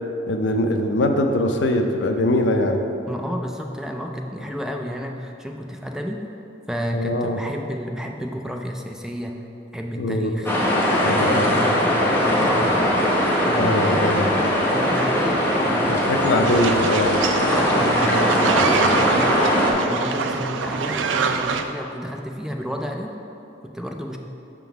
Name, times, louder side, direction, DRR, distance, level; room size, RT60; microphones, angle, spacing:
voice 1, 0.3-2.9 6.9-7.4 10.0-10.3 11.0-11.6 13.6-14.2 15.9-17.1, left 1 dB, 70° left, 5 dB, 0.5 m, -22 dB
voice 2, 3.1-6.3 6.7-9.4 9.7-10.5 11.2-12.9 13.4-14.4 14.7-15.9 17.5-23.2 23.6-24.2, equal, 5° right, 2 dB, 0.3 m, -31 dB
sound 1, 10.5-19.7, equal, 10° left, 0.9 m, -20 dB
sound 2, 16.4-21.6, right 5 dB, 90° right, 0.4 m, -25 dB
6.1 x 3.8 x 5.7 m, 2.8 s
head